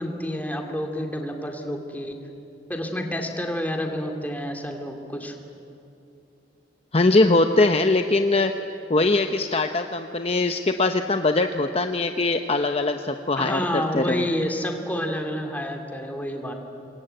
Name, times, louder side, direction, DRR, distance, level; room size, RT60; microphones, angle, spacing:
voice 1, 0.0-2.1 2.7-5.4 13.4-16.5, left 1 dB, 10° left, 3 dB, 2.6 m, -29 dB
voice 2, 6.9-8.5 8.9-14.3, left 2 dB, 35° left, 7 dB, 0.8 m, -21 dB
27.0 x 22.5 x 9.1 m, 2.8 s
head